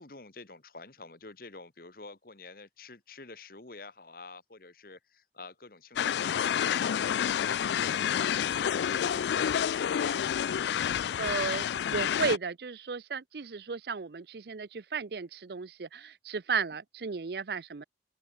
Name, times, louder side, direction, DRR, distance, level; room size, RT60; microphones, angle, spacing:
voice 1, 0.0-11.7, left 3 dB, 55° left, 1.7 m, -48 dB
sound 1, 6.0-12.4, left 9 dB, 75° left, 0.3 m, -29 dB
voice 2, 11.2-17.8, right 5 dB, 60° right, 0.6 m, -34 dB
open air
head